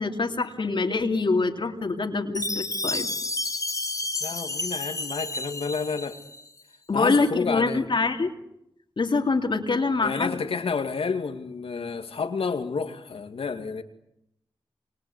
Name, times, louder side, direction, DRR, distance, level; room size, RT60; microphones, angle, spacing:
voice 1, 0.0-3.1 6.9-8.3 9.0-10.4, left 3 dB, 55° left, 3 dB, 3.0 m, -25 dB
Chime, 2.3-6.5, left 2 dB, 35° left, 2.0 m, -31 dB
voice 2, 4.2-6.2 6.9-7.8 10.0-13.8, left 5 dB, 75° left, 7 dB, 2.4 m, -30 dB
28.5 x 25.5 x 8.2 m, 0.83 s
cardioid pair, 45°, 10 cm